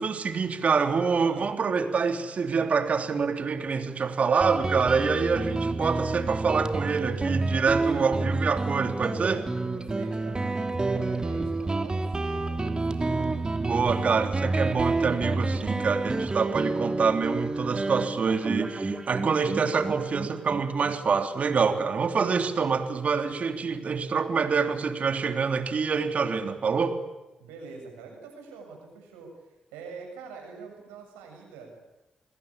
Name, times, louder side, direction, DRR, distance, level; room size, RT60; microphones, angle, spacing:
voice 1, 0.0-9.5 13.6-27.0, right 5 dB, 55° right, 6 dB, 3.3 m, -26 dB
voice 2, 1.2-1.5 5.2-5.7 7.7-8.2 9.6-13.3 27.4-31.8, right 4 dB, 90° right, 2 dB, 7.6 m, -45 dB
Guitar, 4.4-21.6, right 2 dB, 30° right, 2.9 m, -29 dB
28.0 x 20.5 x 8.8 m, 1.0 s
hypercardioid pair, 40°, 3 cm